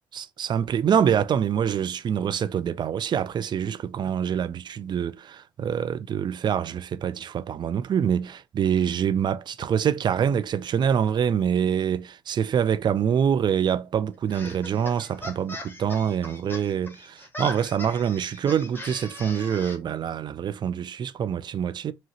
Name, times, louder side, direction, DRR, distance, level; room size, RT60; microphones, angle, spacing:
voice 1, 0.1-21.9, right 8 dB, 45° right, 0.5 m, -25 dB
sound 1, 14.3-19.8, left 2 dB, 20° left, 1.9 m, -39 dB
4.8 x 2.9 x 2.8 m
figure-of-eight pair, 45°, 11 cm